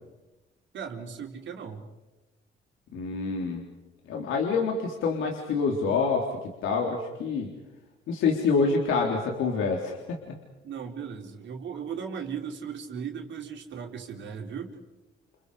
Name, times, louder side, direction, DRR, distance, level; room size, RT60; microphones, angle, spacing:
voice 1, 0.7-1.8 10.6-14.7, right 7 dB, 70° right, 2 dB, 4.6 m, -37 dB
voice 2, 2.9-3.7 4.1-7.5 8.1-10.4, left 4 dB, 85° left, 0 dB, 3.8 m, -27 dB
29.5 x 29.5 x 5.1 m, 1.1 s
cardioid pair, 90°, 20 cm